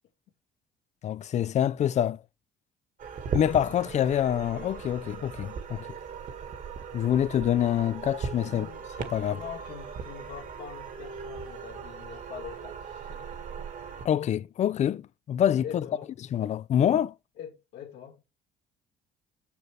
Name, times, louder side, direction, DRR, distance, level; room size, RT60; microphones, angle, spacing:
voice 1, 1.0-2.2 3.3-5.9 6.9-8.7 9.1-9.4 14.0-15.8 16.3-17.1, left 10 dB, 45° left, 0.4 m, -26 dB
sound 1, 3.0-14.1, right 6 dB, 50° right, 1.8 m, -38 dB
voice 2, 8.5-8.9 9.3-13.7 15.6-16.1 17.4-18.2, left 8 dB, 80° left, 2.2 m, -44 dB
6.9 x 6.8 x 3.4 m
cardioid pair, 110°, 17 cm